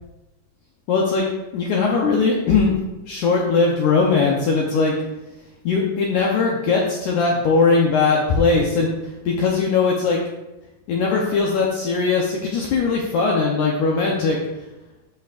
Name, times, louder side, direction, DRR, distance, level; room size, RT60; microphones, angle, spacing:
voice 1, 0.9-1.3 1.5-2.8 3.0-5.0 5.6-10.2 10.9-14.4, left 4 dB, 75° left, -2 dB, 1.8 m, -20 dB
13.0 x 5.9 x 2.5 m, 0.98 s
omnidirectional pair, 4.6 m